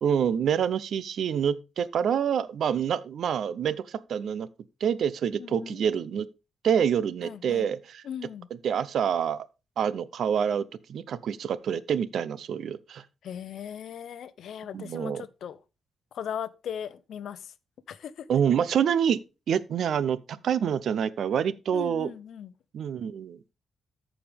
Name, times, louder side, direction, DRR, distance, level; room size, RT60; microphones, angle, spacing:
voice 1, 0.0-4.5 4.8-6.3 6.6-8.0 8.6-9.5 9.8-13.0 14.7-15.2 18.3-19.2 19.5-22.1 22.7-23.4, right 8 dB, 70° right, 0.6 m, -27 dB
voice 2, 5.4-5.8 7.2-7.7 8.0-8.5 13.2-15.6 16.1-17.5 17.9-18.3 21.7-22.5, left 9 dB, 75° left, 0.6 m, -38 dB
14.0 x 5.0 x 3.4 m
cardioid pair, 130°, 0 cm